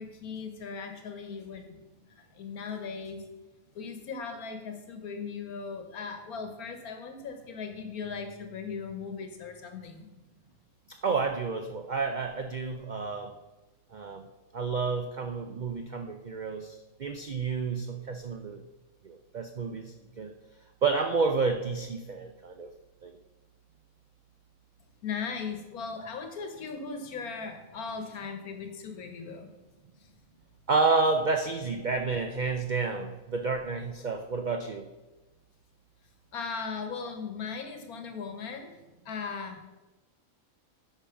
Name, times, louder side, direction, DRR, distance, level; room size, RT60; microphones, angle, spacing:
voice 1, 0.0-1.8 2.2-3.2 3.7-10.1 25.0-29.5 36.3-38.8 39.0-39.7, left 5 dB, 90° left, 6 dB, 1.5 m, -38 dB
voice 2, 10.9-13.4 13.9-14.2 14.5-18.6 19.0-20.3 20.8-22.7 23.0-23.2 30.7-34.9, right 4 dB, 75° right, 6 dB, 0.4 m, -30 dB
8.4 x 5.7 x 5.8 m, 1.1 s
omnidirectional pair, 1.5 m